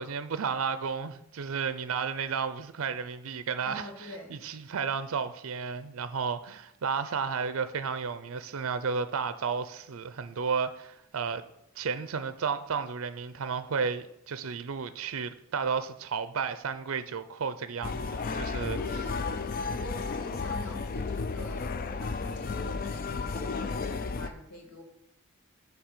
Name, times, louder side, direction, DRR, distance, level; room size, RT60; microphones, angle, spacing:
voice 1, 0.0-11.4 11.8-18.8, right 6 dB, 65° right, 0.5 m, -33 dB
voice 2, 3.7-4.4 18.6-24.8, left 1 dB, 70° left, 1.8 m, -45 dB
sound 1, 17.8-24.3, left 4 dB, 40° left, 0.3 m, -33 dB
9.3 x 3.3 x 6.7 m
head